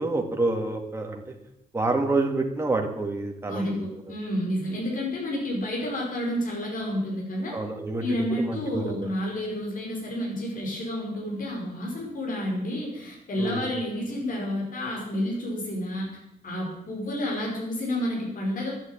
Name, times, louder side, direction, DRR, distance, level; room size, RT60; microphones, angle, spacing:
voice 1, 0.0-1.3 1.7-3.8 7.5-8.0 8.5-9.1 13.4-13.6, right 2 dB, 15° right, 2 dB, 2.0 m, -27 dB
voice 2, 3.5-7.6 8.0-16.1 16.4-18.7, left 1 dB, 60° left, -2 dB, 5.3 m, -30 dB
11.5 x 9.5 x 8.8 m, 0.83 s
wide cardioid pair, 145°, 16 cm